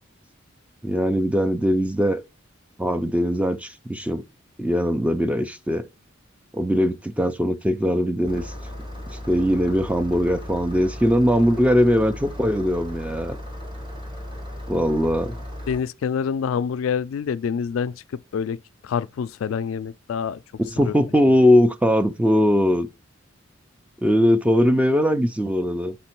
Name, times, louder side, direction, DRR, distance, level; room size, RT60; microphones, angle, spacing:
voice 1, 0.8-2.2 2.8-4.2 4.6-5.9 6.5-8.5 9.3-13.4 14.7-15.4 20.7-22.9 24.0-26.0, equal, 5° right, 0.4 m, -20 dB
Engine starting, 8.2-15.8, left 1 dB, 25° right, 1.5 m, -36 dB
voice 2, 15.7-18.0 18.3-18.6 18.8-20.4 20.8-21.0, left 7 dB, 70° left, 0.3 m, -26 dB
5.3 x 4.3 x 4.4 m
head